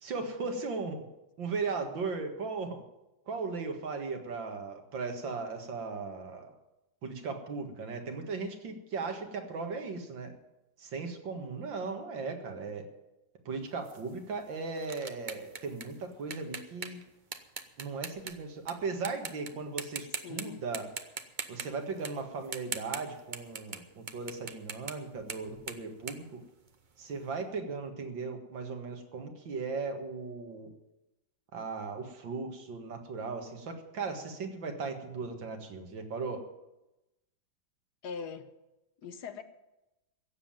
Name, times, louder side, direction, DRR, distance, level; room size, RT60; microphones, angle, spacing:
voice 1, 0.0-1.0 1.4-2.8 3.3-6.5 7.0-10.3 10.8-12.8 13.5-17.0 17.8-20.9 21.5-26.4 27.0-30.7 31.5-36.5, right 4 dB, 80° right, 4 dB, 2.5 m, -37 dB
sound 1, 13.8-18.7 19.0-19.5 19.8-20.4 20.7-27.1, right 5 dB, 40° right, 0.7 m, -41 dB
voice 2, 20.2-20.6 38.0-38.5 39.0-39.4, left 6 dB, 65° left, 10 dB, 1.5 m, -41 dB
16.0 x 7.6 x 8.9 m, 0.95 s
omnidirectional pair, 2.0 m